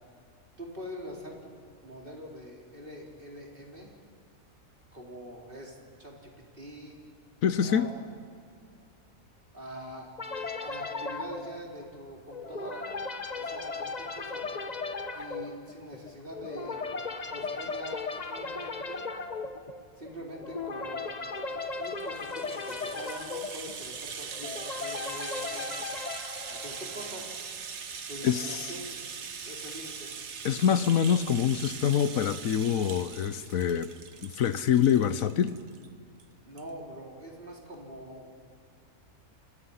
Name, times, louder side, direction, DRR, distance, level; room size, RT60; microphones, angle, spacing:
voice 1, 0.6-3.9 4.9-7.0 7.6-7.9 9.5-10.2 10.6-12.9 13.3-14.4 15.1-16.8 17.2-19.0 20.0-21.1 21.8-25.6 26.5-27.3 28.1-29.0 29.4-30.1 36.4-38.3, equal, 35° right, 4.4 m, -44 dB
voice 2, 7.4-7.9 28.2-28.6 30.4-33.9 34.2-35.6, left 8 dB, 75° left, 1.2 m, -25 dB
sound 1, 10.2-27.4, left 4 dB, 30° left, 1.2 m, -37 dB
Rattle (instrument), 21.7-35.9 36.2-36.3 36.6-36.7, right 6 dB, 55° right, 1.4 m, -41 dB
29.5 x 25.5 x 5.7 m
omnidirectional pair, 1.5 m